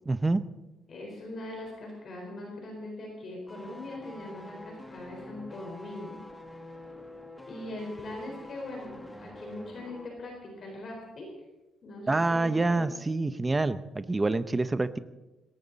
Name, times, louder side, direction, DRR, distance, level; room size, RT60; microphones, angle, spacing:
voice 1, 0.1-0.4 12.1-15.0, right 2 dB, 15° right, 13 dB, 0.7 m, -27 dB
voice 2, 0.9-6.2 7.5-11.3 11.8-12.9, left 2 dB, 40° left, 0 dB, 4.3 m, -41 dB
sound 1, 3.5-10.2 10.4-10.6, left 1 dB, 10° left, 1.4 m, -47 dB
19.5 x 17.5 x 4.1 m, 1.0 s
cardioid pair, 155°, 0 cm